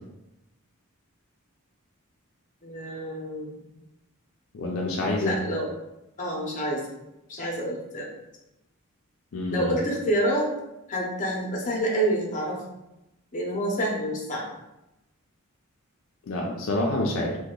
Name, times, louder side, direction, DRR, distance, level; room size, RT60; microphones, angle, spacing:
voice 1, 2.6-3.6 5.2-5.7 6.2-6.8 7.3-8.1 9.5-10.5 10.9-12.6 13.3-14.5, right 1 dB, 35° left, -1 dB, 0.7 m, -27 dB
voice 2, 4.5-5.4 9.3-9.8 16.3-17.4, left 1 dB, 65° left, -1 dB, 0.4 m, -27 dB
2.8 x 2.2 x 3.7 m, 0.91 s
head